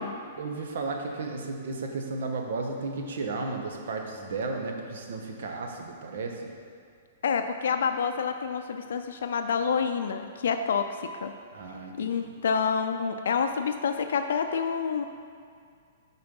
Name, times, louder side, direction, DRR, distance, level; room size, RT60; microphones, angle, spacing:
voice 1, 0.4-6.5 11.5-12.2, right 3 dB, 70° right, 3 dB, 1.0 m, -34 dB
voice 2, 7.2-11.3 12.0-15.1, left 6 dB, 80° left, 7 dB, 0.4 m, -28 dB
6.8 x 4.4 x 5.3 m, 2.2 s
hypercardioid pair, 155°, 0 cm